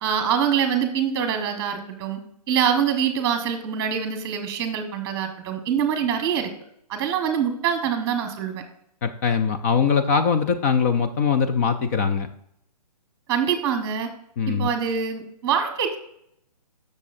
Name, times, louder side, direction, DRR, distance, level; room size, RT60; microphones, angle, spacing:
voice 1, 0.0-2.2 2.5-6.5 6.9-8.6 13.3-14.1 14.5-16.0, right 8 dB, 15° right, 6 dB, 1.4 m, -24 dB
voice 2, 9.0-12.3 14.4-14.7, left 6 dB, 25° left, 7 dB, 0.4 m, -22 dB
15.0 x 6.5 x 2.6 m, 0.73 s
hypercardioid pair, 145°, 21 cm